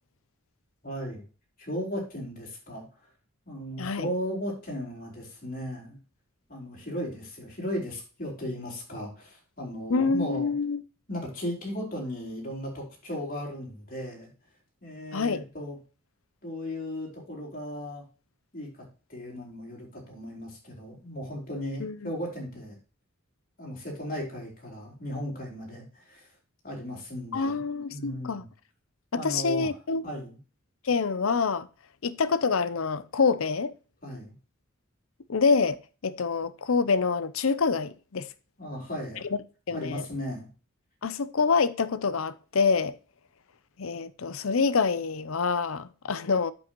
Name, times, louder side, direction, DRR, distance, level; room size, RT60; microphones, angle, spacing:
voice 1, 0.8-1.2 1.6-2.8 3.5-6.0 6.5-10.5 11.1-14.3 14.8-15.8 16.4-18.0 18.5-18.8 19.1-22.8 23.6-26.3 26.6-27.6 27.9-28.5 29.1-29.7 30.0-30.4 34.0-34.3 38.6-39.2 39.7-40.5, equal, 40° left, 4.2 m, -36 dB
voice 2, 3.8-4.1 9.9-10.8 15.1-15.4 21.8-22.1 27.3-28.4 29.1-30.0 30.8-31.7 32.0-33.7 35.3-38.3 39.2-39.4 39.7-40.1 41.0-43.0 43.8-46.5, left 5 dB, 75° left, 0.6 m, -26 dB
8.6 x 7.6 x 3.0 m
head